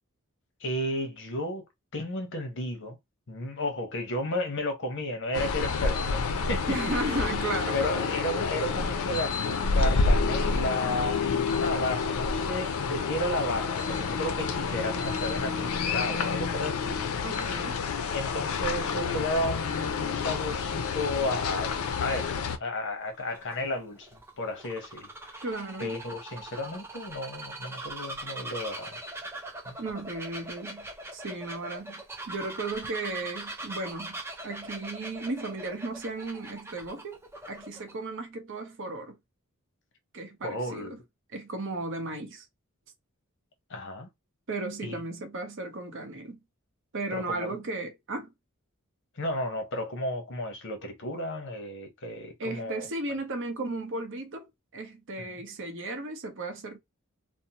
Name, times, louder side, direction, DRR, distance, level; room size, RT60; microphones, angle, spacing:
voice 1, 0.6-1.6 1.9-3.0 3.3-7.2 7.7-17.0 18.1-21.7 22.0-25.4 25.8-29.0 29.7-29.8 40.4-40.9 43.7-44.1 44.8-45.0 47.1-47.6 49.2-52.9 55.2-55.3, left 1 dB, 60° left, 0.8 m, -33 dB
sound 1, 5.3-22.6, left 4 dB, 75° left, 0.4 m, -29 dB
voice 2, 6.7-8.0 17.2-17.8 25.4-26.0 29.8-37.2 37.5-39.2 40.1-41.0 41.3-42.4 44.5-46.4 46.9-48.3 52.4-56.8, right 2 dB, 60° right, 0.7 m, -35 dB
Bird vocalization bird call bird song, 22.9-37.9, right 1 dB, 10° right, 0.4 m, -41 dB
2.6 x 2.0 x 2.8 m
head